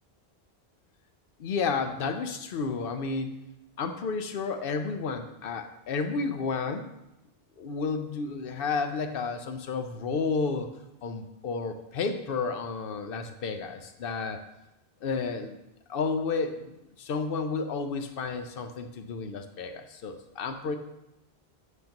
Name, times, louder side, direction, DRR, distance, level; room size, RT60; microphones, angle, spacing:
voice 1, 1.4-3.3 3.8-6.9 7.6-10.7 11.0-14.4 15.0-15.6 15.9-20.8, left 4 dB, 65° left, 7 dB, 0.8 m, -31 dB
8.1 x 2.9 x 5.2 m, 0.88 s
omnidirectional pair, 1.0 m